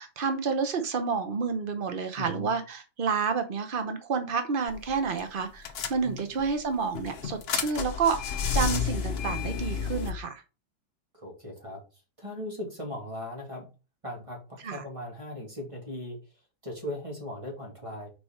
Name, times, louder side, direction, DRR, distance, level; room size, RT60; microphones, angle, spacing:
voice 1, 0.0-10.4 14.6-14.8, right 5 dB, 80° right, 7 dB, 0.4 m, -29 dB
voice 2, 2.2-2.5 6.0-6.2 11.1-11.8 12.2-13.6 14.0-16.2 16.6-18.1, left 1 dB, 15° right, 0 dB, 2.3 m, -38 dB
sound 1, 4.7-4.9 5.2-5.3 5.7-6.4 6.9-10.1, left 6 dB, 60° left, 0.6 m, -30 dB
6.0 x 4.8 x 4.3 m, 0.31 s
omnidirectional pair, 2.1 m